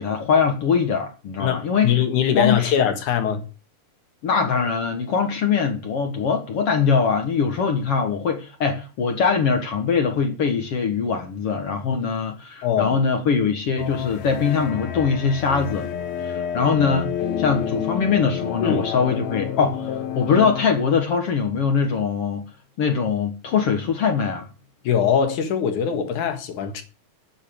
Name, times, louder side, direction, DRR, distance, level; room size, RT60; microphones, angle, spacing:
voice 1, 0.0-2.0 2.3-2.7 4.2-15.9 16.2-22.5 22.8-24.5, left 5 dB, 55° left, 2.2 m, -22 dB
voice 2, 1.4-3.4 12.6-13.0 18.6-18.8 24.8-26.8, left 8 dB, 90° left, 3.2 m, -22 dB
sound 1, 13.8-20.7, left 9 dB, 70° left, 2.2 m, -29 dB
8.9 x 7.5 x 8.8 m
omnidirectional pair, 3.4 m